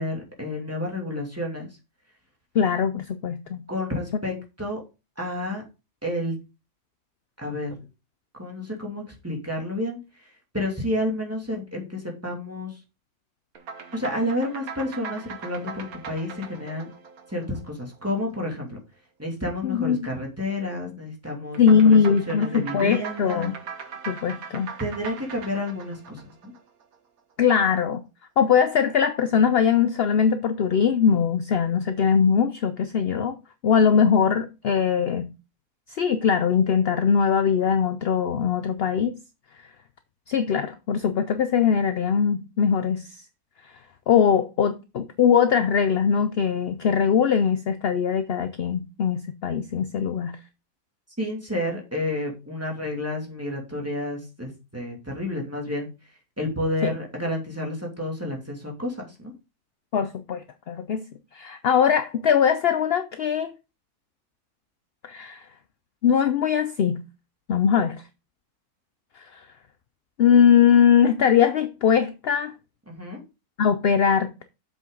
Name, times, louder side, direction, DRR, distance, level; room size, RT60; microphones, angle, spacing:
voice 1, 0.0-1.7 3.7-4.8 5.2-5.6 6.0-6.3 7.4-7.8 8.4-10.0 10.5-12.7 13.9-16.9 17.3-18.7 19.2-22.0 22.3-23.5 24.8-26.5 51.2-55.9 56.4-59.3 72.9-73.2, left 1 dB, 10° right, 2.5 m, -30 dB
voice 2, 2.5-3.6 19.6-20.0 21.6-23.5 24.1-24.7 27.4-28.0 28.4-33.4 33.6-35.3 35.9-39.2 40.3-43.2 44.1-50.3 56.8-56.9 59.9-61.0 61.3-63.5 65.0-65.5 66.0-67.0 67.5-68.0 69.3-69.4 70.2-72.5 73.6-74.4, left 7 dB, 65° left, 0.6 m, -21 dB
sound 1, 13.5-18.2 21.5-27.0, right 6 dB, 70° right, 1.6 m, -40 dB
7.5 x 6.3 x 3.9 m
omnidirectional pair, 1.6 m